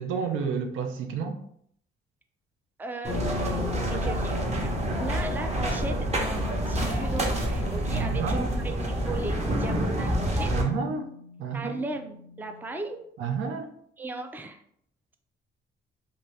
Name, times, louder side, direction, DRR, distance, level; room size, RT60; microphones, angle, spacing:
voice 1, 0.0-1.4 7.9-8.5 10.5-11.1 11.4-11.8 13.2-13.7, right 6 dB, 85° right, 5 dB, 0.5 m, -30 dB
voice 2, 2.8-10.5 11.5-13.0 14.0-14.6, right 2 dB, 10° right, 6 dB, 0.3 m, -37 dB
sound 1, 3.0-10.6, right 1 dB, 35° right, 0.8 m, -28 dB
sound 2, 3.1-12.9, left 5 dB, 80° left, 0.5 m, -41 dB
2.7 x 2.6 x 3.1 m, 0.66 s
cardioid pair, 90°, 20 cm